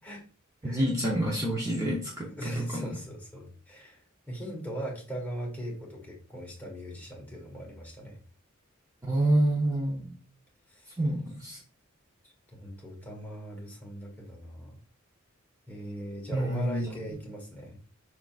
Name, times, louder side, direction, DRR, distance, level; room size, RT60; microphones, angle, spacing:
voice 1, 0.6-2.3 2.6-2.9 9.0-10.1 11.0-11.6 16.3-16.9, right 1 dB, 15° right, -3 dB, 0.8 m, -28 dB
voice 2, 2.3-4.0 4.3-8.2 10.7-11.0 12.5-14.8 15.7-17.8, right 1 dB, 10° left, -3 dB, 1.5 m, -39 dB
5.8 x 3.8 x 2.4 m, 0.39 s
head